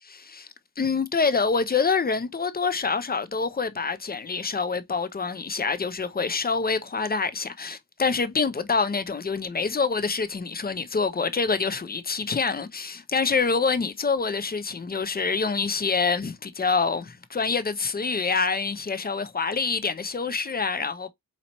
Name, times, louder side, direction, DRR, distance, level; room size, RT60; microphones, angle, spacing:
voice 1, 0.0-0.5 0.8-21.1, left 4 dB, 25° left, 0.5 m, -26 dB
4.2 x 4.1 x 2.9 m
wide cardioid pair, 130°, 37 cm